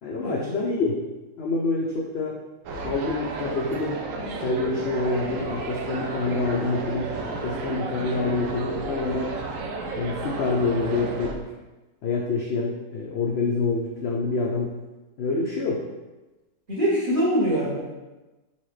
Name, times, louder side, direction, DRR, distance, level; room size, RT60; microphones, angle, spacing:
voice 1, 0.0-1.0 1.4-2.4 2.8-4.0 4.4-9.3 9.9-11.5 12.0-14.7 15.2-15.8, left 3 dB, 70° left, -2 dB, 0.6 m, -27 dB
sound 1, 2.6-11.3, right 3 dB, 70° right, 0.8 m, -32 dB
voice 2, 16.7-17.8, equal, 35° right, -6 dB, 1.1 m, -23 dB
4.1 x 3.9 x 3.2 m, 1.1 s
omnidirectional pair, 1.7 m